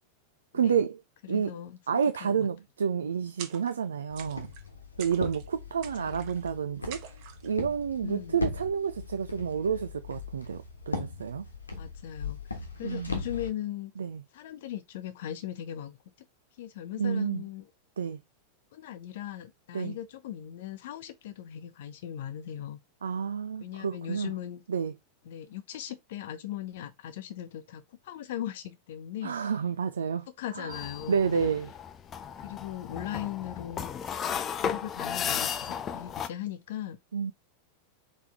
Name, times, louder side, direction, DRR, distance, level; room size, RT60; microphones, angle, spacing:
voice 1, 0.5-1.0 1.3-1.5 1.9-4.5 5.0-11.4 12.8-13.1 14.0-14.2 17.0-17.4 18.0-18.2 19.7-20.0 23.0-24.3 24.7-24.9 29.2-30.3 30.5-30.8 31.1-31.7 37.1-37.3, right 7 dB, 70° right, 0.4 m, -30 dB
voice 2, 1.2-2.5 6.0-6.3 8.0-8.5 11.8-13.9 14.3-16.0 16.6-17.7 18.7-22.8 23.6-24.6 25.3-29.3 30.4-31.5 32.4-33.9 34.6-37.0, left 11 dB, 55° left, 0.8 m, -39 dB
sound 1, 3.4-3.9 4.2-4.7 5.0-5.5 5.8-6.5 6.9-7.5, right 8 dB, 45° right, 1.0 m, -45 dB
Walk footsteps, 4.1-13.5, left 4 dB, 80° left, 1.2 m, -39 dB
sound 2, 30.7-36.3, left 8 dB, 25° left, 0.5 m, -34 dB
4.4 x 3.5 x 3.5 m
figure-of-eight pair, 90°, 0 cm